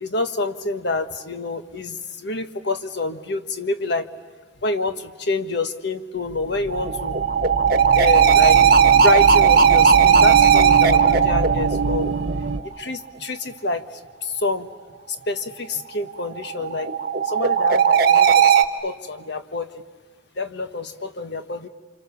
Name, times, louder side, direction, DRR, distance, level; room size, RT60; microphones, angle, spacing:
voice 1, 0.0-4.1 4.6-7.1 7.9-8.6 9.0-12.1 12.6-13.9 14.2-14.7 15.3-16.9 17.2-18.6 18.8-19.8 20.4-21.7, left 3 dB, 55° left, 8 dB, 1.4 m, -27 dB
sound 1, 6.3-12.6, right 3 dB, 75° right, 0.9 m, -26 dB
sound 2, 6.7-12.7 16.2-18.6, right 7 dB, 45° right, 1.2 m, -16 dB
29.5 x 27.0 x 7.1 m, 1.5 s
head